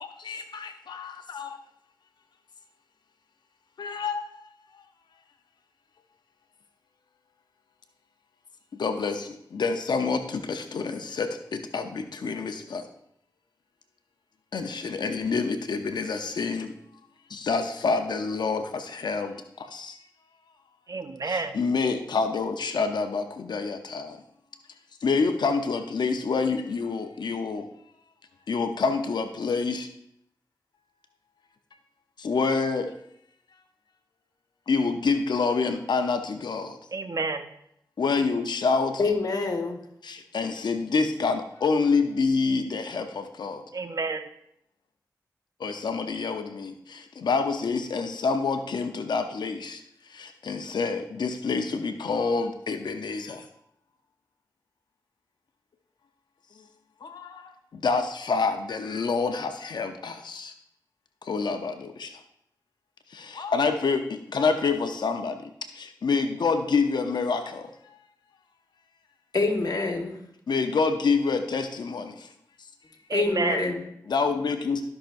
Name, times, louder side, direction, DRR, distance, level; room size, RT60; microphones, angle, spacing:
voice 1, 0.0-1.6 3.8-4.5 8.8-12.9 14.5-16.7 17.3-20.0 21.2-24.2 25.0-27.7 28.5-29.9 32.2-32.9 34.7-36.8 38.0-39.0 40.0-43.6 45.6-49.8 50.1-53.5 57.0-60.5 61.2-62.2 63.1-67.7 70.5-72.3 74.1-74.8, left 4 dB, 80° left, 6 dB, 0.7 m, -27 dB
voice 2, 20.9-21.5 36.9-37.5 43.7-44.3 73.1-73.7, right 3 dB, 50° right, 8 dB, 0.8 m, -29 dB
voice 3, 39.0-39.8 69.3-70.2 73.1-74.1, left 3 dB, 65° left, 3 dB, 1.5 m, -26 dB
14.0 x 5.9 x 2.6 m, 0.75 s
cardioid pair, 50°, 7 cm